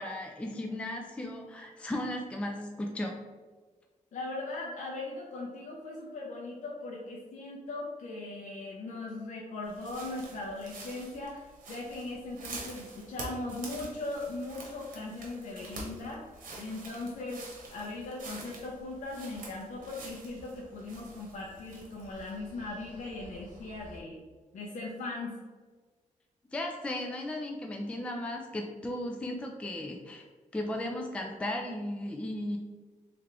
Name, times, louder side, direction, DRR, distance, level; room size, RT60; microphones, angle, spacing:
voice 1, 0.0-3.1 26.5-30.3 30.5-32.6, left 1 dB, 10° left, 2 dB, 0.4 m, -35 dB
voice 2, 4.1-16.2 16.6-17.4 17.7-24.2 24.5-25.4, left 2 dB, 70° left, -3 dB, 0.7 m, -39 dB
sound 1, 9.6-24.0, right 2 dB, 85° right, 1.0 m, -47 dB
3.4 x 3.3 x 3.6 m, 1.3 s
wide cardioid pair, 135°, 14 cm